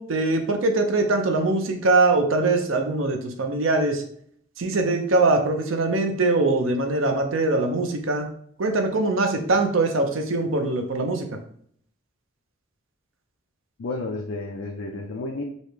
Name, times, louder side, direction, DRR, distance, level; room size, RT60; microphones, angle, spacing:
voice 1, 0.0-4.0 4.6-8.3 8.6-11.3, right 2 dB, 80° right, 5 dB, 0.6 m, -22 dB
voice 2, 13.8-15.4, left 2 dB, 65° left, 1 dB, 0.5 m, -31 dB
5.3 x 2.2 x 3.2 m, 0.63 s
head